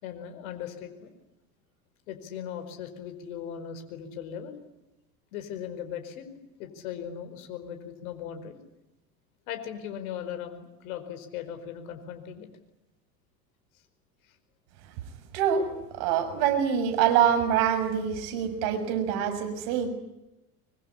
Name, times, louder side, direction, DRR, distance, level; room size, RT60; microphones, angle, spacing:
voice 1, 0.0-1.1 2.1-4.6 5.3-8.6 9.5-12.5, left 9 dB, 70° left, 7 dB, 4.9 m, -38 dB
voice 2, 15.3-15.7 16.0-19.9, right 8 dB, 65° right, 7 dB, 6.8 m, -25 dB
24.5 x 23.5 x 9.9 m, 0.93 s
hypercardioid pair, 85°, 43 cm